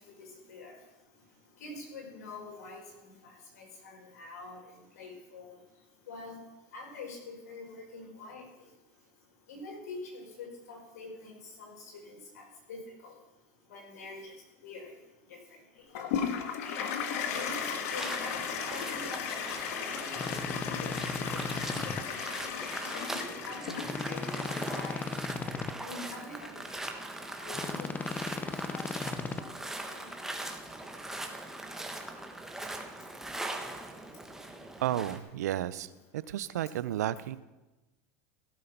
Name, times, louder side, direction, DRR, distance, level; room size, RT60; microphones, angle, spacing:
voice 1, 1.6-2.8 3.2-4.6 5.0-5.6 6.1-6.4 6.7-8.4 9.5-11.7 12.0-13.1 13.7-14.3 14.6-14.9 16.6-17.6 17.9-19.3 19.7-22.5 23.4-25.1 25.8-26.5 26.8-27.0 27.4-28.8 29.4-30.1, left 3 dB, 90° left, -1 dB, 5.6 m, -45 dB
Toilet flush, 16.0-25.2, left 7 dB, 70° left, 1.6 m, -36 dB
sound 1, 17.3-35.2, right 2 dB, 5° right, 1.3 m, -41 dB
sound 2, 20.2-22.0 23.8-25.7 27.5-29.4, left 4 dB, 20° left, 0.7 m, -36 dB
voice 2, 34.8-37.4, right 12 dB, 90° right, 16 dB, 0.6 m, -33 dB
16.0 x 7.8 x 5.9 m, 1.1 s
supercardioid pair, 125°, 9 cm